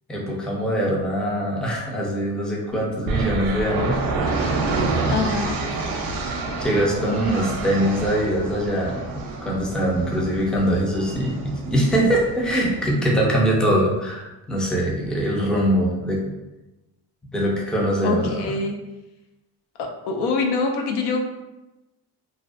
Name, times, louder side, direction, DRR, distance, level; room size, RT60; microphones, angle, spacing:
voice 1, 0.1-4.6 5.7-5.8 6.6-16.2 17.3-18.4, equal, ahead, -3 dB, 0.4 m, -23 dB
sound 1, 3.1-12.9, right 3 dB, 65° right, 0.5 m, -28 dB
voice 2, 5.1-5.5 18.0-18.7 19.8-21.2, left 4 dB, 85° left, 3 dB, 0.5 m, -24 dB
2.4 x 2.0 x 2.4 m, 1.0 s
cardioid pair, 100°, 39 cm